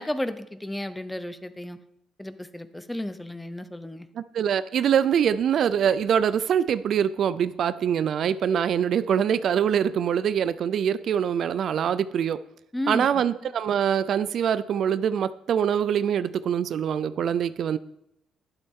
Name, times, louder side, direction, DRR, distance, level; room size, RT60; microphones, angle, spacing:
voice 1, 0.0-1.8 2.2-4.1 12.7-13.2, left 1 dB, 5° left, 11 dB, 0.6 m, -33 dB
voice 2, 4.2-12.4 12.9-17.8, right 8 dB, 50° right, 15 dB, 0.3 m, -24 dB
12.0 x 11.5 x 3.6 m, 0.81 s
cardioid pair, 170°, 0 cm